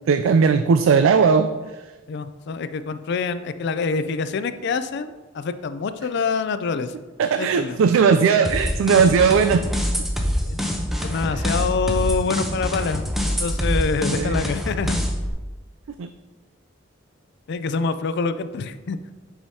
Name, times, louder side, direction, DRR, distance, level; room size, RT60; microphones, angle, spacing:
voice 1, 0.1-1.5 7.2-9.6 14.1-14.4 16.0-16.1, right 5 dB, 85° right, 9 dB, 0.3 m, -17 dB
voice 2, 2.1-6.9 7.4-7.8 10.4-10.6 11.0-15.0 17.5-19.0, left 4 dB, 60° left, 11 dB, 0.4 m, -26 dB
sound 1, 8.4-15.3, equal, ahead, 0.7 m, -25 dB
10.0 x 4.9 x 2.8 m, 1.2 s
head